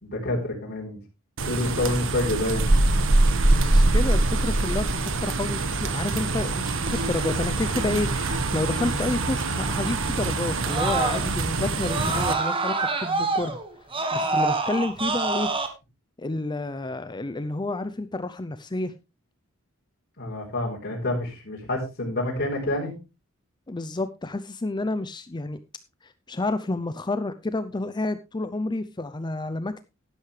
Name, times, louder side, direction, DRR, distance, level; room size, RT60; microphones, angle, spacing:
voice 1, 0.0-1.0 1.5-2.6 20.2-22.9, left 1 dB, 50° left, -2 dB, 4.1 m, -28 dB
sound 1, 1.4-12.3, right 2 dB, 65° right, 1.4 m, -24 dB
voice 2, 3.6-13.6 14.1-15.5 16.2-18.9 23.7-25.6 26.0-29.9, left 2 dB, 20° left, 12 dB, 0.5 m, -30 dB
Screaming, 6.9-11.5 11.8-15.7, right 3 dB, 25° right, 1.6 m, -29 dB
11.5 x 11.5 x 3.2 m, 0.27 s
head